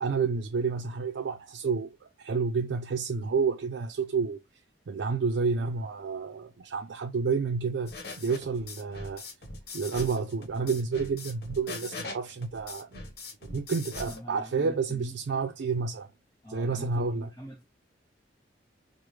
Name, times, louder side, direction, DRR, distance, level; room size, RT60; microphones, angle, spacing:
voice 1, 0.0-4.4 4.9-9.2 9.7-13.0 13.4-16.1 16.5-17.3, right 5 dB, 70° right, 0.4 m, -30 dB
sound 1, 7.9-14.2, left 3 dB, 60° left, 1.0 m, -41 dB
voice 2, 14.1-15.6 16.4-17.6, equal, 20° left, 1.0 m, -44 dB
4.7 x 2.0 x 3.1 m
head